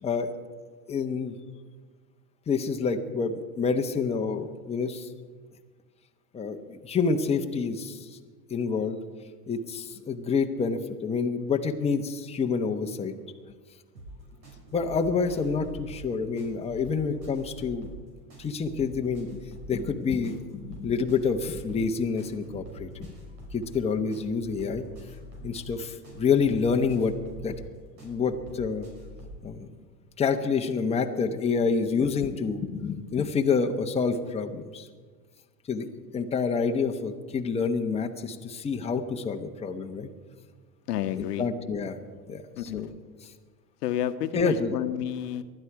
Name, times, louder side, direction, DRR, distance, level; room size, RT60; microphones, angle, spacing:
voice 1, 0.0-0.3 0.9-1.4 2.5-5.1 6.3-8.0 8.5-9.0 9.5-13.1 14.7-17.9 18.4-19.3 19.7-23.1 23.5-24.8 25.4-27.6 28.0-28.9 29.4-29.7 30.2-34.9 35.7-40.1 41.4-42.0 42.3-42.9 44.3-44.7, left 5 dB, 15° left, 4 dB, 1.0 m, -28 dB
sound 1, 13.9-29.4, equal, 80° right, 5.8 m, -45 dB
voice 2, 40.9-41.5 42.6-42.9 43.8-45.4, left 11 dB, 70° left, 10 dB, 1.1 m, -30 dB
19.0 x 12.0 x 4.8 m, 1.5 s
hypercardioid pair, 115°, 49 cm